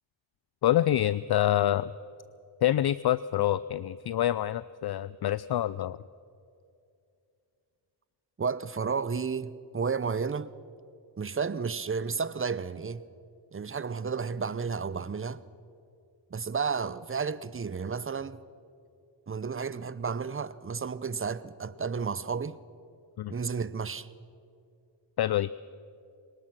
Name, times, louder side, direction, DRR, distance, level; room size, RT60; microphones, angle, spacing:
voice 1, 0.6-1.9 2.6-6.0 23.2-23.3 25.2-25.5, left 12 dB, 55° left, 0.5 m, -26 dB
voice 2, 8.4-10.5 11.2-13.0 13.5-15.4 16.3-18.4 19.3-22.6 23.3-24.1, right 5 dB, 25° right, 0.7 m, -32 dB
22.5 x 19.0 x 6.1 m
cardioid pair, 50°, 47 cm